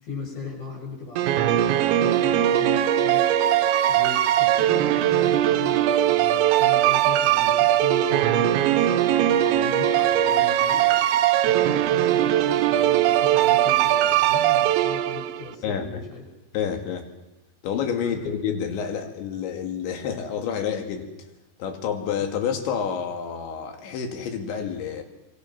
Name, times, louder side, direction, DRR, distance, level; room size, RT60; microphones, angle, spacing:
voice 1, 0.0-3.3 3.9-10.9 11.2-16.2 18.0-18.2, left 3 dB, 55° left, 0 dB, 8.2 m, -38 dB
sound 1, 1.2-15.5, right 12 dB, 85° right, 3.2 m, -20 dB
voice 2, 16.5-17.1 17.6-21.1 21.6-25.0, left 7 dB, 85° left, 5 dB, 4.5 m, -28 dB
26.0 x 23.0 x 6.0 m, 1.1 s
omnidirectional pair, 5.1 m